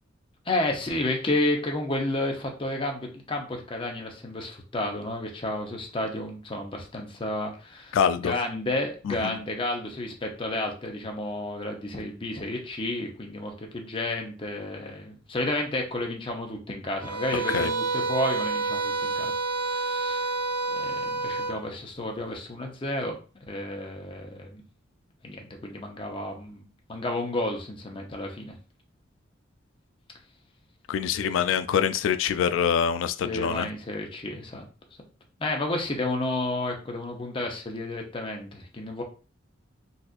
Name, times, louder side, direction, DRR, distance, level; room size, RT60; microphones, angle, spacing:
voice 1, 0.5-20.3 20.7-24.6 25.2-28.6 31.3-31.6 33.2-34.7 35.4-39.0, left 1 dB, 25° left, 2 dB, 0.7 m, -31 dB
voice 2, 7.9-8.3 9.1-9.4 17.5-17.7 30.9-33.7, left 7 dB, 75° left, 12 dB, 0.3 m, -25 dB
sound 1, 17.0-21.6, right 3 dB, 10° right, 0.8 m, -29 dB
4.1 x 2.4 x 2.4 m, 0.35 s
head